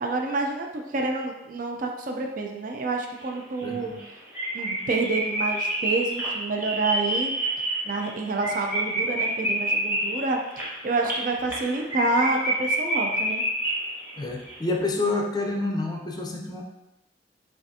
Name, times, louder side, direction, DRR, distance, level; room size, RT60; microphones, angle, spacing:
voice 1, 0.0-3.9 4.5-7.3 7.9-13.4, right 3 dB, 50° right, 2 dB, 0.4 m, -28 dB
sound 1, 3.2-3.3 3.6-3.7 4.0-4.1 4.3-14.2 14.4-14.6, right 1 dB, 10° right, 1.2 m, -28 dB
voice 2, 3.6-4.0 14.2-16.6, left 2 dB, 25° left, 2 dB, 0.5 m, -28 dB
5.7 x 2.5 x 2.7 m, 0.95 s
head